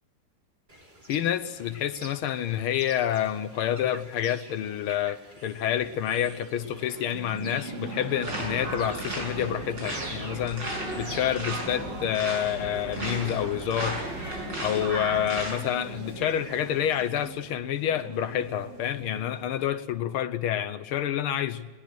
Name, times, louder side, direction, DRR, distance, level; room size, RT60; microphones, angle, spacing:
sound 1, 0.7-17.3, right 1 dB, 20° right, 3.0 m, -48 dB
voice 1, 1.1-10.7 11.0-14.0 14.6-21.7, left 10 dB, 85° left, 11 dB, 1.8 m, -28 dB
sound 2, 5.8-19.7, right 4 dB, 40° right, 1.9 m, -42 dB
sound 3, 8.2-15.5, right 1 dB, 60° right, 6.6 m, -35 dB
21.0 x 20.0 x 6.4 m, 1.3 s
omnidirectional pair, 2.3 m